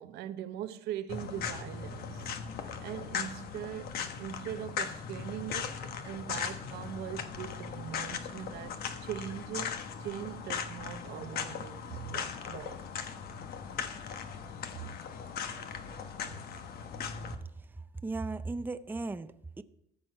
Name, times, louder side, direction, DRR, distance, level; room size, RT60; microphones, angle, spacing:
voice 1, 0.0-2.3 2.8-3.9 4.2-5.7 6.0-12.8 14.8-14.9 16.2-16.3, right 11 dB, 75° right, 0.7 m, -41 dB
sound 1, 1.1-17.4, left 6 dB, 65° left, 1.2 m, -39 dB
voice 2, 17.3-19.6, right 3 dB, 10° right, 0.5 m, -37 dB
14.5 x 6.3 x 5.6 m
cardioid pair, 110°, 17 cm